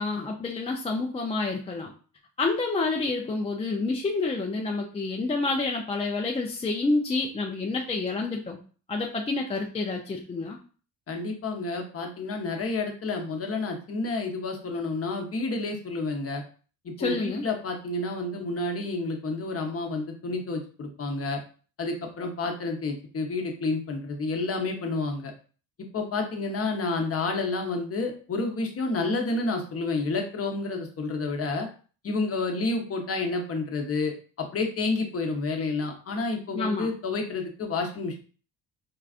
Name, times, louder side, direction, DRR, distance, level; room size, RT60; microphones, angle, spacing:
voice 1, 0.0-1.9 2.4-8.6 8.9-10.6 17.0-17.4 36.5-36.9, left 3 dB, 15° left, 0 dB, 0.4 m, -28 dB
voice 2, 11.1-16.4 16.8-21.4 21.8-25.3 25.9-31.7 32.0-38.2, left 3 dB, 35° left, 2 dB, 0.9 m, -30 dB
4.7 x 2.3 x 2.4 m, 0.39 s
supercardioid pair, 85°, 43 cm